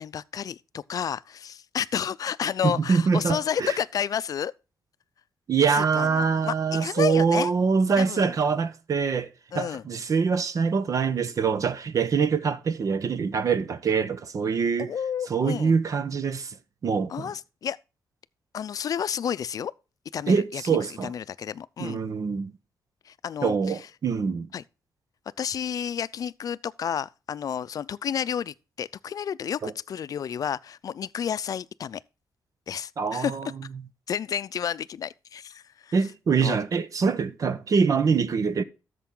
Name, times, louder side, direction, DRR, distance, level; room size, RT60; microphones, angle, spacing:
voice 1, 0.0-4.5 5.7-7.5 8.0-8.3 9.5-9.8 14.8-15.7 17.1-17.8 18.5-19.7 20.1-22.0 23.1-23.8 24.5-24.6 25.4-32.0 32.7-33.5 34.1-35.9 36.4-36.6, left 8 dB, 55° left, 0.5 m, -31 dB
voice 2, 2.6-3.8 5.5-9.3 9.5-14.9 15.3-16.5 16.8-17.3 20.3-21.1 21.8-22.5 23.4-24.5 29.6-29.7 33.0-33.5 35.9-38.6, right 5 dB, 50° right, 1.0 m, -24 dB
13.0 x 6.8 x 3.8 m
cardioid pair, 115°, 7 cm